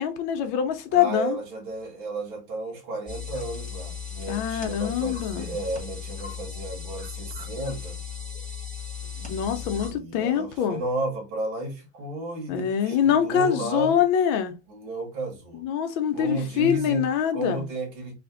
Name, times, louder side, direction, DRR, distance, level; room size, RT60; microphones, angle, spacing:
voice 1, 0.0-1.4 4.3-5.6 9.3-10.8 12.5-14.5 15.6-17.7, left 8 dB, 80° left, 1.6 m, -24 dB
voice 2, 0.9-8.0 9.0-14.0 14.7-15.6 16.1-17.1 17.3-18.1, right 2 dB, 85° right, 2.1 m, -33 dB
sound 1, 3.1-9.9, left 6 dB, 5° left, 1.8 m, -36 dB
3.9 x 3.4 x 3.7 m
omnidirectional pair, 2.2 m